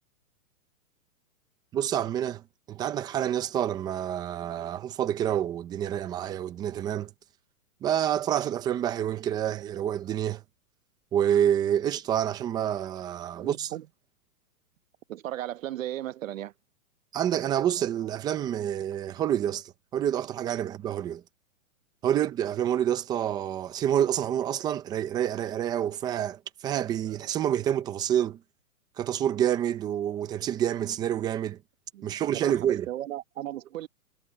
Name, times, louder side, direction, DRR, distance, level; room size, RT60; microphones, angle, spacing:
voice 1, 1.7-7.1 7.8-10.4 11.1-13.7 17.1-21.2 22.0-28.4 29.0-31.6 32.0-32.9, right 10 dB, 10° right, 0.6 m, -28 dB
voice 2, 13.4-13.9 15.1-16.5 31.9-33.9, right 13 dB, 60° right, 1.4 m, -36 dB
hypercardioid pair, 155°, 44 cm